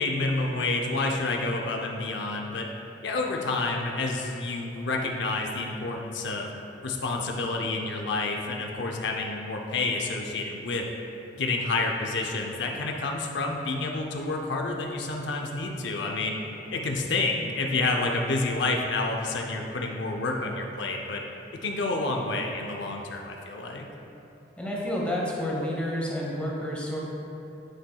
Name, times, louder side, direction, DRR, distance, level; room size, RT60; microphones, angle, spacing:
voice 1, 0.0-2.7 3.0-6.5 6.8-10.9 11.4-16.4 16.7-21.2 21.6-23.9, left 3 dB, 70° left, 1 dB, 0.6 m, -29 dB
voice 2, 24.6-27.0, left 1 dB, 5° left, -4 dB, 1.1 m, -30 dB
8.9 x 7.3 x 2.3 m, 2.9 s
head